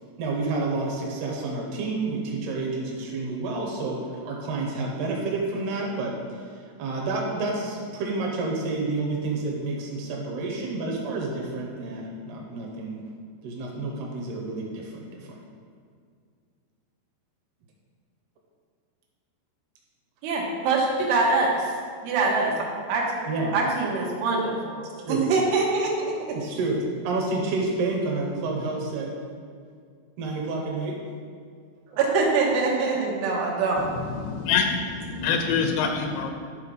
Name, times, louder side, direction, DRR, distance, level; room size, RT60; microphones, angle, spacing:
voice 1, 0.2-4.0 4.3-6.4 6.8-13.0 13.4-15.4 23.3-23.5 25.1-25.3 26.3-26.8 27.0-29.1 30.2-31.0, right 3 dB, 70° right, -1 dB, 2.8 m, -29 dB
voice 2, 20.2-21.7 22.0-23.0 23.5-24.8 25.1-26.4 31.9-33.9, right 3 dB, 90° right, -2 dB, 3.8 m, -24 dB
voice 3, 33.8-36.3, left 6 dB, 80° left, 4 dB, 2.6 m, -26 dB
11.5 x 4.2 x 5.5 m, 2.1 s
omnidirectional pair, 5.3 m